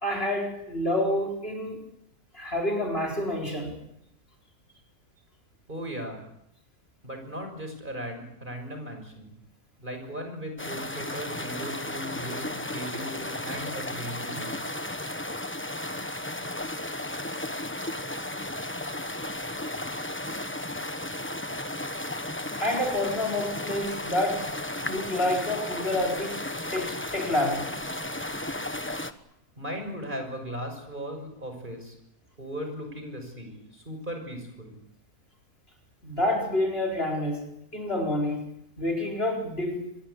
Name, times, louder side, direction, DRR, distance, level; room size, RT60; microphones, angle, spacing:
voice 1, 0.0-1.8 2.3-3.8 22.6-24.5 24.8-26.4 26.7-27.7 36.0-38.4 38.8-39.9, left 1 dB, 40° left, 2 dB, 4.9 m, -28 dB
voice 2, 5.7-6.2 7.0-9.3 9.8-14.6 29.6-31.9 32.4-34.8, equal, 30° right, 4 dB, 6.4 m, -37 dB
sound 1, 10.6-29.1, left 1 dB, 10° left, 1.1 m, -34 dB
26.0 x 21.5 x 8.5 m, 0.79 s
omnidirectional pair, 1.6 m